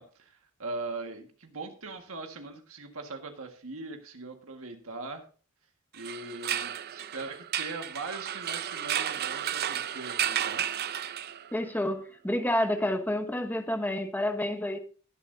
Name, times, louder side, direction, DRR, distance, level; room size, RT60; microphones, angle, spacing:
voice 1, 0.0-5.2 5.9-10.6, right 3 dB, 70° right, 4 dB, 1.7 m, -40 dB
sound 1, 5.9-11.6, right 10 dB, 45° right, 0.5 m, -33 dB
voice 2, 11.5-14.8, left 1 dB, 10° left, 6 dB, 1.0 m, -29 dB
20.0 x 7.2 x 2.7 m, 0.39 s
head